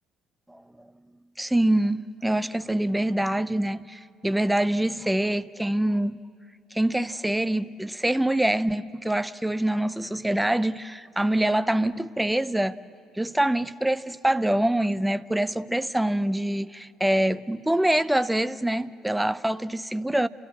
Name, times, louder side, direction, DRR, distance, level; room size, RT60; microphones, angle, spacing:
voice 1, 0.5-0.9 1.4-6.2 6.7-12.8 13.2-20.3, right 1 dB, 5° right, 0.5 m, -25 dB
30.0 x 13.5 x 8.5 m
figure-of-eight pair, 50°, 0 cm